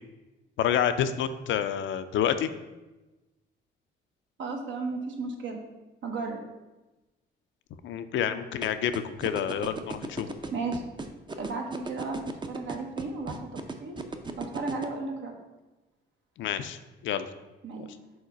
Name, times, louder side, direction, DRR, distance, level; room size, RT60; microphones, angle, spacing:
voice 1, 0.6-2.5 7.8-10.4 16.4-16.8 17.0-17.3 17.8-17.9, left 9 dB, 70° left, 10 dB, 0.5 m, -28 dB
voice 2, 4.4-5.6 6.0-6.4 10.5-10.8 11.4-14.0 14.4-15.3 17.6-17.9, right 3 dB, 70° right, 2 dB, 1.1 m, -34 dB
sound 1, 8.6-14.9, right 3 dB, 25° right, 0.6 m, -35 dB
5.0 x 3.8 x 5.2 m, 1.1 s
cardioid pair, 90°, 20 cm